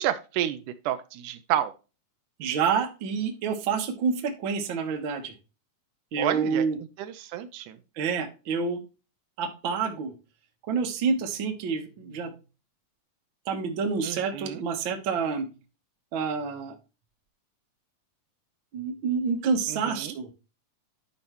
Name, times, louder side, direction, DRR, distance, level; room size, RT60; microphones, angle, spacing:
voice 1, 0.0-1.7 6.2-6.7 7.0-7.8 14.0-14.6 19.7-20.2, right 11 dB, 80° right, 11 dB, 2.0 m, -30 dB
voice 2, 2.4-5.3 6.1-6.8 8.0-8.8 9.4-10.1 10.7-12.3 13.5-15.5 16.1-16.7 18.7-20.3, right 5 dB, 55° right, 4 dB, 1.5 m, -28 dB
10.5 x 5.5 x 3.0 m, 0.31 s
omnidirectional pair, 3.6 m